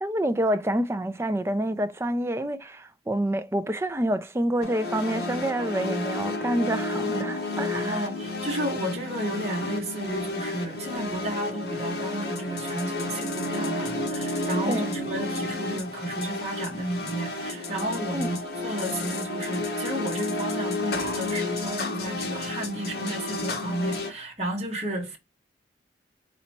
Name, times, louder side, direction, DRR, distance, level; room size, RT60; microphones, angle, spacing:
voice 1, 0.0-8.1 14.7-14.9 18.1-18.3, right 1 dB, 15° right, 0.4 m, -27 dB
sound 1, 4.6-24.1, left 2 dB, 60° left, 1.5 m, -31 dB
voice 2, 7.7-25.2, right 1 dB, 35° right, 1.5 m, -32 dB
4.3 x 4.0 x 2.9 m
head